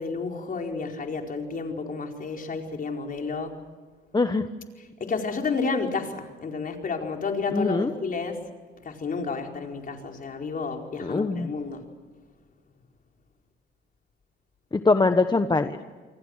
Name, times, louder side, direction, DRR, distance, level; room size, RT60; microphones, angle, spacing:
voice 1, 0.0-3.5 5.0-8.4 8.8-11.8, left 4 dB, 45° left, 2 dB, 4.7 m, -31 dB
voice 2, 4.1-4.5 7.5-7.9 11.0-11.5 14.7-15.8, left 3 dB, 20° left, 8 dB, 1.2 m, -23 dB
28.5 x 23.5 x 6.6 m, 1.5 s
cardioid pair, 90°, 20 cm